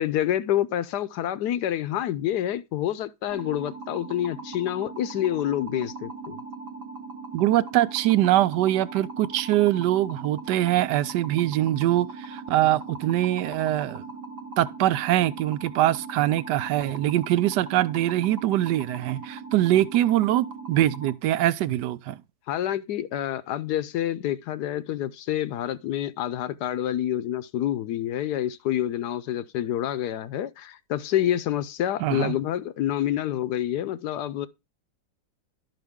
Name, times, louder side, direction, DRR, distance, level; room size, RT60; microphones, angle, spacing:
voice 1, 0.0-6.4 22.5-34.5, left 12 dB, 70° left, 1.1 m, -28 dB
sound 1, 3.3-21.1, right 4 dB, 50° right, 1.2 m, -39 dB
voice 2, 7.3-14.0 14.6-22.2 32.0-32.4, right 14 dB, 75° right, 1.1 m, -23 dB
11.5 x 5.8 x 3.5 m
omnidirectional pair, 2.0 m